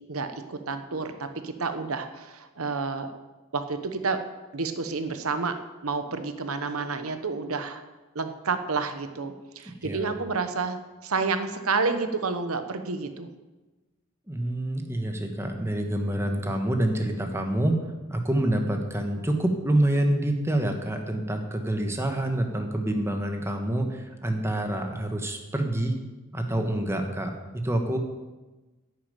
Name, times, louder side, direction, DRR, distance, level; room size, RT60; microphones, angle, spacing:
voice 1, 0.1-3.1 3.5-4.2 4.5-5.6 5.8-7.8 8.1-13.3, right 4 dB, 70° right, 9 dB, 1.0 m, -30 dB
voice 2, 9.8-10.1 14.3-26.0 26.3-27.3 27.6-28.0, right 1 dB, 10° right, 4 dB, 1.4 m, -27 dB
10.5 x 7.2 x 9.0 m, 1.2 s
head